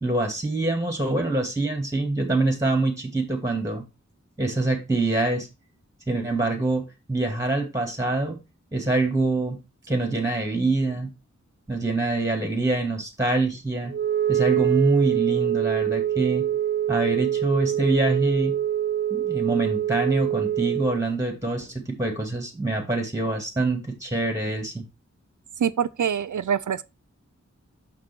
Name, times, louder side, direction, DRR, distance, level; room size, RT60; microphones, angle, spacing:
voice 1, 0.0-3.8 4.4-5.5 6.1-6.8 7.1-8.3 8.7-9.6 9.9-11.1 11.7-13.9 14.3-16.5 16.9-18.6 19.1-24.8, right 2 dB, 10° right, 2.5 m, -25 dB
Wind instrument woodwind instrument, 13.9-21.0, right 11 dB, 40° right, 0.7 m, -25 dB
voice 2, 25.6-26.9, right 8 dB, 80° right, 0.5 m, -25 dB
6.3 x 6.1 x 4.5 m
wide cardioid pair, 50°, 29 cm